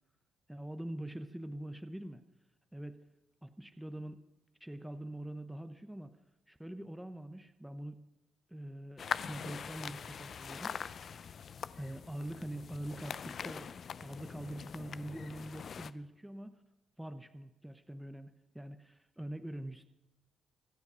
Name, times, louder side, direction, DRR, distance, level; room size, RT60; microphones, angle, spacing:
voice 1, 0.5-2.2 2.7-3.0 3.4-4.2 4.6-6.1 6.5-8.0 8.5-10.8 11.8-13.7 14.0-16.6 17.0-19.8, right 1 dB, 5° right, 9 dB, 0.9 m, -44 dB
sound 1, 9.0-15.9, left 7 dB, 50° left, 0.6 m, -43 dB
24.5 x 8.2 x 6.2 m, 0.93 s
cardioid pair, 90°, 0 cm